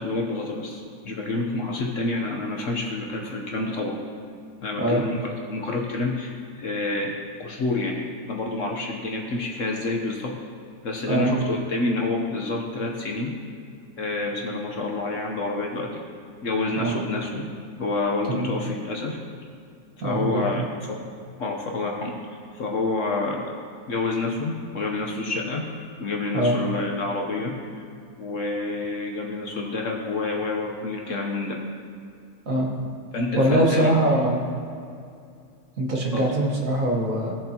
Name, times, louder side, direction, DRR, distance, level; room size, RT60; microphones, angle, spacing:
voice 1, 0.0-4.0 4.6-8.0 8.3-10.4 10.8-13.3 14.0-16.0 16.4-17.4 17.8-19.2 20.0-21.0 21.4-22.2 22.5-23.5 23.9-25.6 26.0-27.8 28.2-31.6 33.1-34.0 36.1-36.2, left 3 dB, 55° left, 0 dB, 1.1 m, -28 dB
voice 2, 20.0-20.6 26.3-26.6 32.5-32.7 33.4-34.4 35.8-37.3, right 1 dB, 55° right, -1 dB, 1.7 m, -22 dB
16.5 x 7.4 x 2.9 m, 2.4 s
omnidirectional pair, 1.8 m